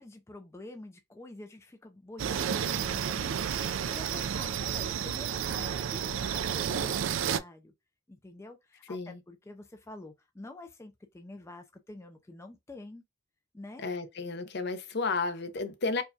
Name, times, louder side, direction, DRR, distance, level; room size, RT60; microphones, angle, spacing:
voice 1, 0.0-7.7 8.1-13.0 13.5-13.8, left 2 dB, 15° left, 0.4 m, -47 dB
sound 1, 2.2-7.4, right 8 dB, 85° right, 0.4 m, -31 dB
voice 2, 8.9-9.2 13.8-16.0, left 4 dB, 60° left, 0.6 m, -32 dB
4.5 x 2.2 x 2.7 m
head